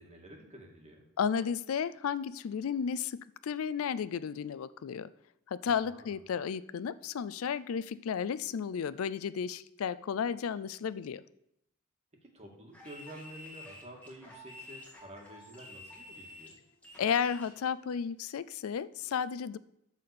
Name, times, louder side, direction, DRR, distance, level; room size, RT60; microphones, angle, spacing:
voice 1, 0.0-1.0 5.6-6.2 12.3-16.6, right 1 dB, 30° right, 1 dB, 2.0 m, -50 dB
voice 2, 1.2-5.1 5.5-11.2 17.0-19.6, left 7 dB, 80° left, 16 dB, 0.4 m, -33 dB
sound 1, 12.7-17.6, left 1 dB, 5° left, 2.2 m, -50 dB
12.5 x 4.2 x 6.7 m, 0.79 s
head